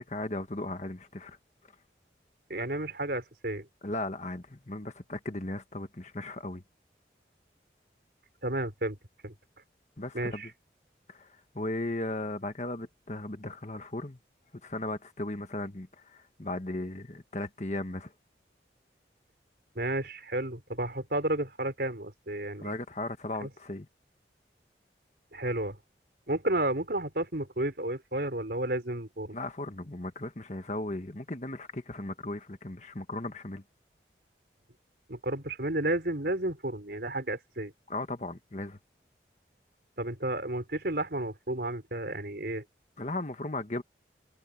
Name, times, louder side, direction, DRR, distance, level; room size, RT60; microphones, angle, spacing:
voice 1, 0.0-1.4 3.8-6.6 10.0-10.5 11.1-14.2 14.6-18.1 22.6-23.9 29.3-33.6 37.9-38.8 43.0-43.8, left 2 dB, 40° left, 1.5 m, -36 dB
voice 2, 2.5-3.7 8.4-9.0 9.2-9.3 10.1-10.5 19.7-22.8 23.4-23.5 25.3-25.8 26.3-29.4 35.1-37.7 40.0-42.6, right 1 dB, 65° right, 4.4 m, -32 dB
head